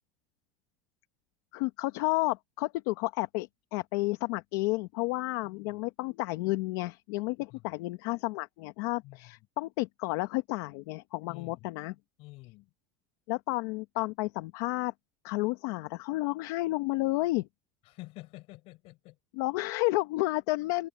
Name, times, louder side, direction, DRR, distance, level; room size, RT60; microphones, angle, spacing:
voice 1, 1.5-11.9 13.3-14.9 15.2-17.5 19.3-20.9, left 21 dB, 65° left, 1.2 m, -31 dB
voice 2, 5.4-5.9 7.5-7.8 9.0-9.3 11.3-11.7 12.2-12.7 17.8-19.2, left 21 dB, 50° left, 6.0 m, -49 dB
cardioid pair, 170°, 13 cm